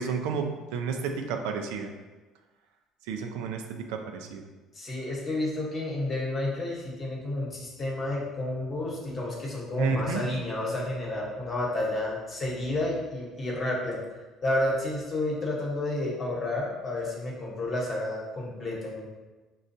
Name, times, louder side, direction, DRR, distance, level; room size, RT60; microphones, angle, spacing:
voice 1, 0.0-1.9 3.1-4.4 9.8-10.2, right 5 dB, 90° right, 4 dB, 0.4 m, -31 dB
voice 2, 4.7-14.0 14.4-19.1, left 1 dB, 35° left, -3 dB, 1.0 m, -31 dB
4.9 x 2.3 x 2.7 m, 1.2 s
cardioid pair, 110°, 0 cm